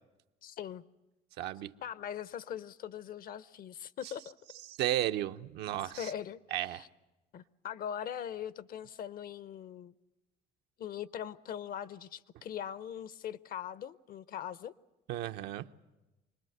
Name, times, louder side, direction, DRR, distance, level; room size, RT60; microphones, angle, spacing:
voice 1, 0.4-0.8 1.8-4.4 6.0-6.9 7.3-9.9 10.8-14.7, left 9 dB, 60° left, 0.7 m, -41 dB
voice 2, 1.4-1.7 4.7-6.1 6.5-6.8 15.1-15.7, right 12 dB, 85° right, 0.8 m, -34 dB
25.5 x 20.0 x 7.9 m
cardioid pair, 110°, 17 cm